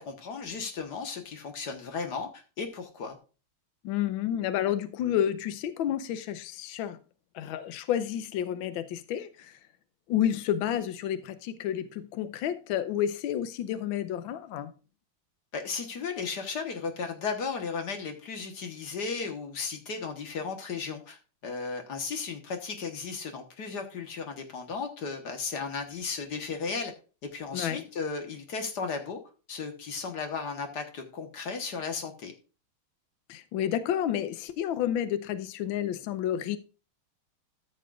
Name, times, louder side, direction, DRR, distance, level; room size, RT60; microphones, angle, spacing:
voice 1, 0.0-3.2 15.5-26.9 27.3-29.2 29.5-32.3, left 5 dB, 55° left, 1.7 m, -35 dB
voice 2, 3.8-7.0 7.3-9.6 10.1-14.7 27.5-27.8 33.3-36.6, left 10 dB, 75° left, 1.4 m, -30 dB
14.0 x 6.7 x 2.4 m
omnidirectional pair, 2.3 m